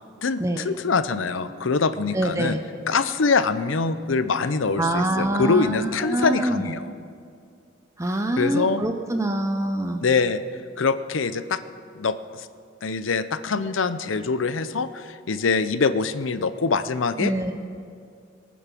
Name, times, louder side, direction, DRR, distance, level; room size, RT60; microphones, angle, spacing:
voice 1, 0.2-2.5 2.9-6.8 8.4-8.8 10.0-10.4 10.8-11.6 12.0-12.5 12.8-17.3, left 4 dB, 80° left, 12 dB, 0.7 m, -24 dB
sound 1, 1.1-1.9 2.8-5.9, left 2 dB, 90° right, 4.7 m, -43 dB
voice 2, 2.1-2.6 4.8-6.6 8.0-10.0 17.2-17.5, right 1 dB, 15° right, 5 dB, 0.6 m, -25 dB
23.0 x 9.4 x 6.0 m, 2.3 s
head